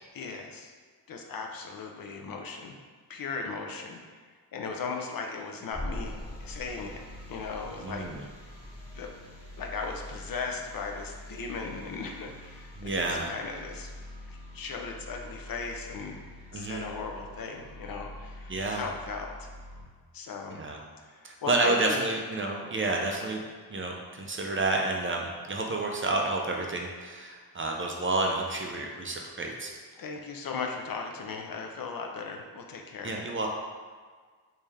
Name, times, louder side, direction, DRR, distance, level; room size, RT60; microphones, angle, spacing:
voice 1, 0.1-0.7 1.1-2.8 3.1-4.0 4.5-6.1 6.4-7.0 7.3-8.1 8.9-9.1 9.6-13.9 14.3-16.2 16.5-19.5 20.1-20.6 21.1-22.1 29.9-33.2, left 4 dB, 60° left, 2 dB, 0.5 m, -37 dB
sound 1, 5.7-19.8, left 1 dB, 40° left, 1.1 m, -44 dB
voice 2, 7.8-8.2 12.8-13.3 16.5-16.9 18.5-18.9 20.5-20.8 21.2-23.4 23.7-29.7 33.0-33.5, right 2 dB, 30° right, 0 dB, 0.4 m, -30 dB
3.2 x 2.7 x 3.4 m, 1.5 s
wide cardioid pair, 95°, 39 cm